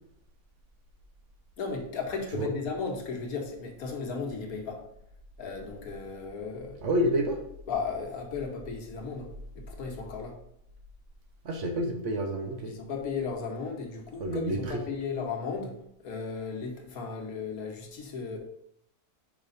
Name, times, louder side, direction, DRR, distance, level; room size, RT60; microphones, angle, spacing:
voice 1, 1.6-4.8 5.4-6.8 7.7-10.4 12.6-15.8 16.0-18.4, left 5 dB, 75° left, 2 dB, 1.5 m, -35 dB
voice 2, 6.8-7.4 11.4-12.7 14.2-14.6, equal, 60° right, 4 dB, 1.0 m, -28 dB
5.0 x 4.9 x 4.0 m, 0.76 s
omnidirectional pair, 1.6 m